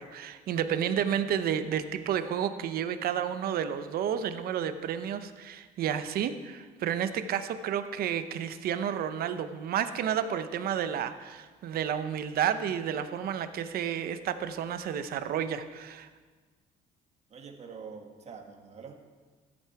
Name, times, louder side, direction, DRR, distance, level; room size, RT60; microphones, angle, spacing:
voice 1, 0.0-16.1, right 9 dB, 65° right, 10 dB, 0.8 m, -31 dB
voice 2, 17.3-18.9, right 5 dB, 40° right, 2 dB, 1.7 m, -45 dB
14.0 x 8.7 x 4.6 m, 1.4 s
cardioid pair, 110°, 17 cm